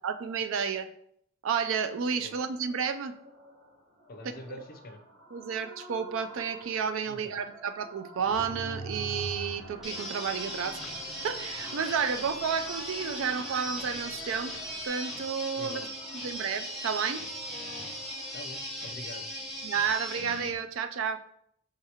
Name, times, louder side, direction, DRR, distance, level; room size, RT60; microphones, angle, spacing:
voice 1, 0.0-0.9 1.4-3.1 4.5-4.6 5.3-10.8 11.2-15.8 16.2-17.3 19.6-21.2, right 6 dB, 65° right, 10 dB, 0.3 m, -31 dB
sound 1, 1.8-18.3, right 1 dB, 50° right, 1.0 m, -51 dB
voice 2, 4.1-5.0 7.1-7.5 15.6-15.9 18.3-19.3, left 2 dB, 45° left, 6 dB, 0.5 m, -45 dB
Mechanisms, 8.2-14.9, right 1 dB, 90° right, 0.8 m, -45 dB
sound 2, 9.8-20.5, equal, ahead, 0.8 m, -38 dB
3.6 x 2.8 x 4.8 m, 0.71 s
head